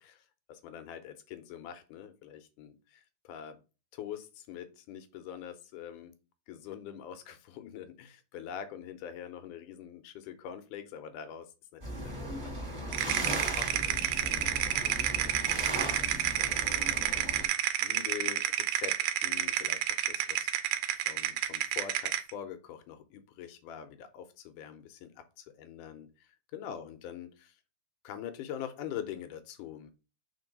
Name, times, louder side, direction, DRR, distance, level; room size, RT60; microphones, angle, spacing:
voice 1, 0.0-3.6 3.9-6.1 6.5-15.4 15.9-17.4 17.8-19.0 19.2-20.7 21.1-27.6 28.0-29.9, left 9 dB, 80° left, 9 dB, 2.1 m, -44 dB
sound 1, 11.8-17.5, equal, 15° right, 2.1 m, -37 dB
sound 2, 12.9-22.3, right 12 dB, 85° right, 2.1 m, -30 dB
4.5 x 4.1 x 5.1 m, 0.31 s
omnidirectional pair, 3.9 m